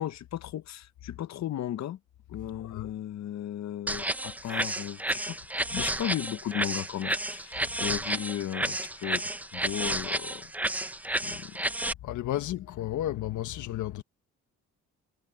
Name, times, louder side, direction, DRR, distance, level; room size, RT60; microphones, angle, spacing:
voice 1, 0.0-2.0 2.3-5.4 5.7-10.5 11.2-11.6, left 11 dB, 60° left, 0.9 m, -35 dB
voice 2, 2.5-2.9 5.8-5.9 7.6-8.0 12.0-14.0, left 13 dB, 80° left, 1.5 m, -34 dB
sound 1, 3.9-11.9, right 1 dB, 5° right, 0.6 m, -31 dB
cardioid pair, 90°, 30 cm